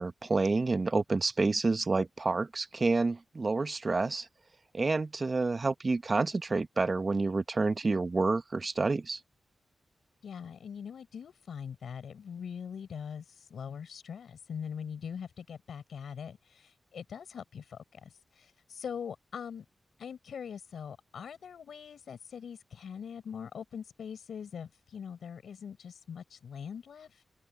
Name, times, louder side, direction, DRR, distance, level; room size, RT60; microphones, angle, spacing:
voice 1, 0.0-4.3 4.7-9.2, right 3 dB, 45° right, 1.1 m, -29 dB
voice 2, 10.2-13.2 13.5-18.1 18.3-19.6 20.0-27.1, left 7 dB, 85° left, 5.1 m, -42 dB
cardioid pair, 60°, 0 cm